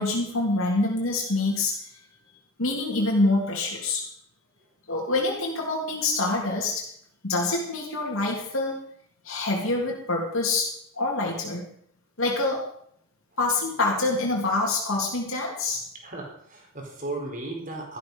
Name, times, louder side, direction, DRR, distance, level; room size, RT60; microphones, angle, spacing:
voice 1, 0.0-1.8 2.6-4.0 4.9-6.8 7.2-8.8 9.2-11.7 12.2-12.6 13.4-15.8, left 2 dB, 75° left, -2 dB, 3.0 m, -26 dB
voice 2, 16.0-18.0, right 2 dB, 40° right, 1 dB, 4.3 m, -35 dB
13.5 x 13.0 x 5.4 m, 0.68 s
head